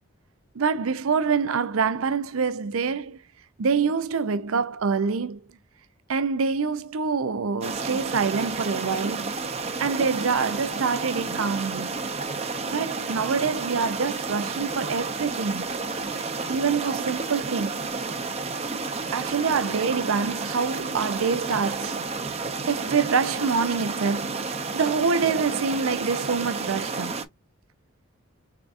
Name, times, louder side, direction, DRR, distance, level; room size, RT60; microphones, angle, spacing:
voice 1, 0.5-3.2 3.6-5.4 6.1-9.4 9.8-12.0 12.7-15.7 16.5-17.9 19.1-22.0 22.7-27.2, right 5 dB, 85° right, 0.6 m, -26 dB
sound 1, 7.6-27.2, right 4 dB, 30° right, 0.7 m, -31 dB
4.7 x 3.7 x 2.5 m
head